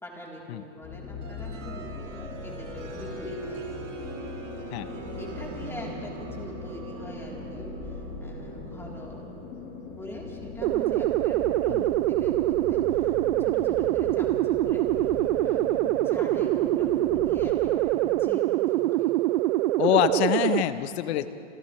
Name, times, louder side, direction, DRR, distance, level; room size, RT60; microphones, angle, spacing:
voice 1, 0.0-3.5 5.2-9.3 10.0-15.7 16.0-19.1 21.1-21.3, left 1 dB, 5° left, -3 dB, 3.7 m, -43 dB
sound 1, 0.8-18.3, left 6 dB, 40° left, 2.0 m, -41 dB
sound 2, 1.2-13.7, right 4 dB, 80° right, 3.8 m, -42 dB
sound 3, 10.6-20.6, right 16 dB, 60° right, 0.5 m, -24 dB
voice 2, 19.8-21.3, left 12 dB, 60° left, 12 dB, 1.1 m, -25 dB
28.0 x 27.5 x 3.3 m, 2.5 s
supercardioid pair, 135°, 37 cm